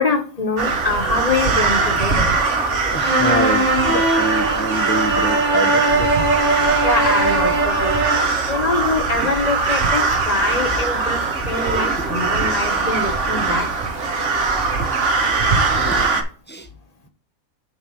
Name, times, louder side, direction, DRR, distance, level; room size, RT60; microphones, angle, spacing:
voice 1, 0.0-2.2 6.8-8.0 8.5-13.7, left 3 dB, 30° left, 5 dB, 1.1 m, -24 dB
sound 1, 0.6-16.2, right 4 dB, 60° right, 1.5 m, -21 dB
voice 2, 2.8-6.1 12.5-12.6 15.0-15.2 15.7-16.7, right 1 dB, 10° left, 6 dB, 0.6 m, -27 dB
sound 2, 3.0-8.4, right 2 dB, 80° right, 3.9 m, -20 dB
8.8 x 3.3 x 5.7 m, 0.40 s
omnidirectional pair, 1.4 m